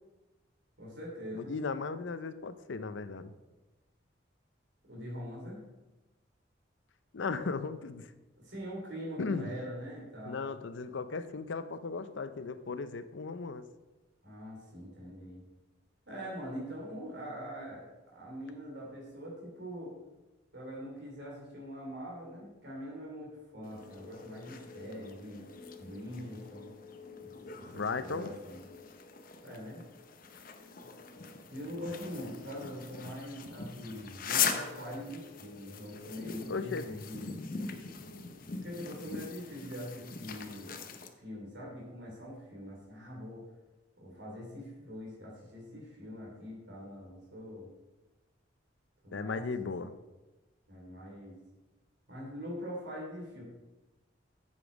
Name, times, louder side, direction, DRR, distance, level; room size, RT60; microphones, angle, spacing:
voice 1, 0.8-1.5 4.9-5.6 8.4-10.5 14.2-15.4 16.1-19.9 20.5-25.4 25.8-26.7 27.2-27.3 27.7-28.7 29.4-29.8 31.5-37.3 38.6-40.8 41.2-43.4 44.0-47.7 49.0-49.9 50.7-51.4 52.1-53.4, equal, 65° right, -4 dB, 3.1 m, -43 dB
voice 2, 1.3-3.3 7.1-8.1 9.2-9.5 10.3-13.7 27.7-28.3 36.5-37.0 49.1-49.9, left 4 dB, 75° left, 12 dB, 0.6 m, -36 dB
sound 1, 23.6-41.1, left 6 dB, 50° left, 0.8 m, -41 dB
8.3 x 7.0 x 5.1 m, 1.1 s
head